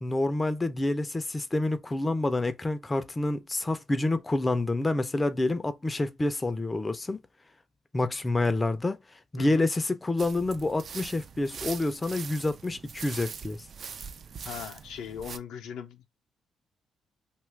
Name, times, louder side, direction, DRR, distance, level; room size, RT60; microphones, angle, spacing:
voice 1, 0.0-7.2 7.9-9.0 9.3-13.6, left 2 dB, 20° left, 0.4 m, -28 dB
voice 2, 9.4-9.7 14.4-16.1, left 8 dB, 85° left, 0.5 m, -39 dB
sound 1, 10.2-15.4, right 6 dB, 55° right, 0.3 m, -42 dB
2.7 x 2.3 x 3.1 m
cardioid pair, 90°, 0 cm